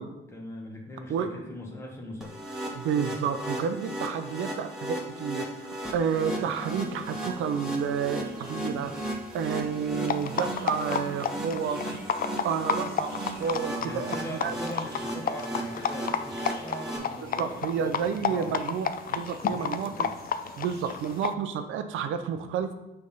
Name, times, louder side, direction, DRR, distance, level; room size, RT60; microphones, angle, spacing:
voice 1, 0.3-2.4 3.6-3.7 13.8-18.6 19.4-20.1, left 1 dB, 15° left, -2 dB, 1.2 m, -40 dB
sound 1, 2.2-17.0, right 1 dB, 5° right, 1.5 m, -36 dB
voice 2, 2.8-5.5 5.9-8.9 9.3-11.8 12.4-14.1 14.4-14.5 17.4-20.1 20.6-22.7, right 7 dB, 80° right, 8 dB, 0.7 m, -30 dB
sound 2, 6.1-21.2, right 3 dB, 50° right, 1.3 m, -53 dB
sound 3, 10.0-21.3, left 7 dB, 45° left, 0.5 m, -32 dB
6.6 x 3.5 x 5.5 m, 0.96 s
cardioid pair, 90°, 20 cm